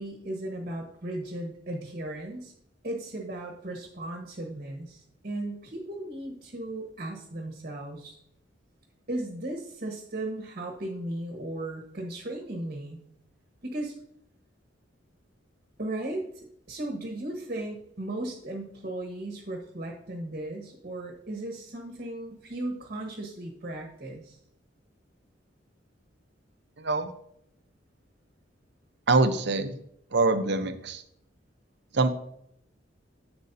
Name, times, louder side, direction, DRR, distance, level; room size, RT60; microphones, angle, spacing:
voice 1, 0.0-2.5 2.8-8.1 9.1-13.0 13.6-13.9 15.8-24.4, right 1 dB, 50° right, 1 dB, 1.4 m, -36 dB
voice 2, 26.8-27.1 29.1-29.7 30.1-31.0 31.9-32.1, right 3 dB, 65° right, 9 dB, 0.8 m, -24 dB
10.5 x 7.8 x 2.8 m, 0.72 s
head